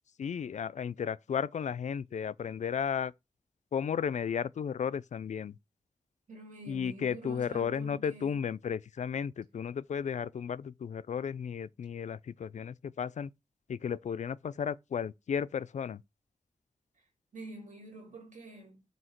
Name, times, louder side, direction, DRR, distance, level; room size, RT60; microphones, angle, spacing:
voice 1, 0.2-3.1 3.7-5.6 6.7-13.3 13.7-16.0, left 7 dB, 70° left, 0.4 m, -34 dB
voice 2, 6.3-8.5 17.0-17.1 17.3-18.8, right 1 dB, 85° right, 2.3 m, -47 dB
7.7 x 2.8 x 4.4 m
wide cardioid pair, 110°, 13 cm